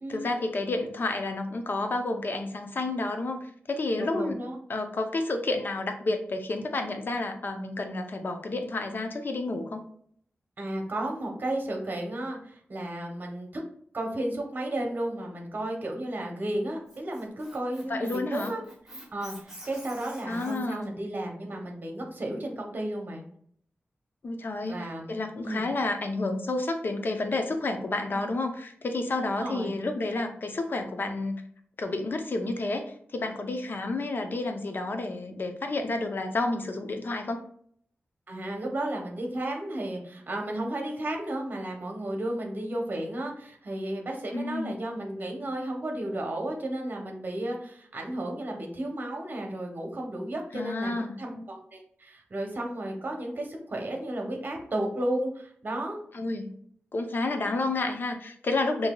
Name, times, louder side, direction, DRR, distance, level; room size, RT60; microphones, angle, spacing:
voice 1, 0.1-4.4 4.7-9.8 17.9-18.5 20.3-21.0 24.2-31.4 31.8-37.4 44.3-44.7 50.5-51.2 56.1-56.5 56.9-58.9, left 2 dB, 55° left, 5 dB, 0.6 m, -30 dB
voice 2, 4.0-4.6 10.6-13.5 13.9-18.6 19.1-23.2 24.6-25.1 25.4-25.7 29.4-29.7 38.3-56.0, right 1 dB, 45° right, 2 dB, 0.9 m, -33 dB
Squeak, 16.6-20.9, right 1 dB, 10° right, 1.0 m, -46 dB
5.5 x 2.7 x 2.2 m, 0.62 s
wide cardioid pair, 120°, 4 cm